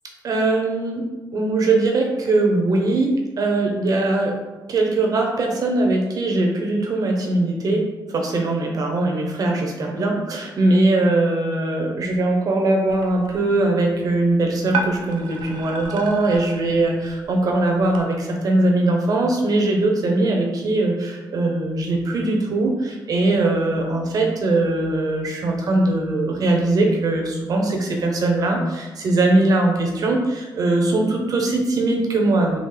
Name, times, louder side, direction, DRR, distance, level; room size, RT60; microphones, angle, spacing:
voice 1, 0.2-1.0 1.3-4.3 4.7-7.8 8.1-32.6, right 2 dB, 50° right, 1 dB, 0.7 m, -21 dB
sound 1, 12.9-18.0, right 3 dB, 85° right, 0.4 m, -33 dB
3.6 x 2.4 x 3.2 m, 1.2 s
cardioid pair, 125°, 8 cm